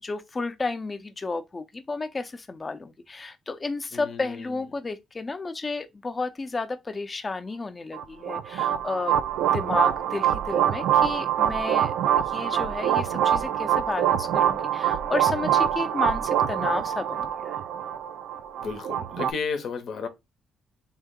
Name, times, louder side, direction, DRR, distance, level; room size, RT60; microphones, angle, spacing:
voice 1, 0.0-9.2 9.4-17.6, left 3 dB, 30° left, 0.6 m, -32 dB
voice 2, 3.9-4.6 18.6-20.1, left 5 dB, 65° left, 0.8 m, -33 dB
sound 1, 7.9-19.3, right 10 dB, 85° right, 0.4 m, -25 dB
3.6 x 2.8 x 3.6 m
cardioid pair, 90°, 0 cm